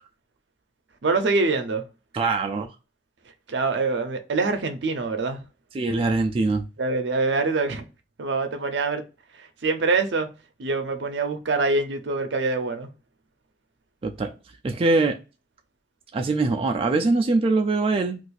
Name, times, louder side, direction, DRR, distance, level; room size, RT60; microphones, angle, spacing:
voice 1, 1.0-1.8 3.5-5.4 6.8-7.8 8.2-9.0 9.6-10.3 10.6-12.9, right 3 dB, 75° right, 0.6 m, -24 dB
voice 2, 2.1-2.7 5.7-6.6 14.0-14.3 14.6-15.2 16.1-18.2, right 3 dB, 30° right, 0.3 m, -22 dB
2.5 x 2.4 x 3.9 m
head